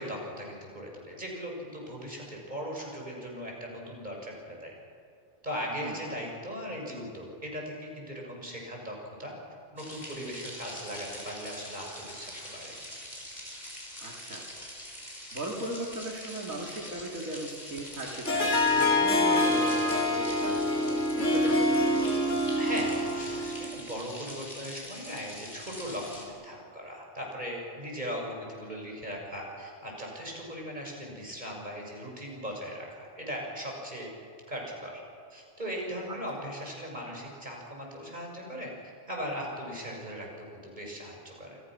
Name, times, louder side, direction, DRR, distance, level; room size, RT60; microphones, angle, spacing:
voice 1, 0.0-4.7 5.4-9.3 9.7-12.7 22.6-34.1 34.5-35.0 35.3-38.7 39.1-41.6, equal, 35° right, -1 dB, 6.6 m, -38 dB
sound 1, 9.8-26.3, equal, 30° left, 5.8 m, -44 dB
voice 2, 14.0-14.5 15.3-22.2 36.1-36.2, right 1 dB, 85° right, -1 dB, 3.5 m, -38 dB
Harp, 18.3-23.7, left 1 dB, 60° left, 2.6 m, -26 dB
28.5 x 27.0 x 6.3 m, 2.3 s
omnidirectional pair, 1.4 m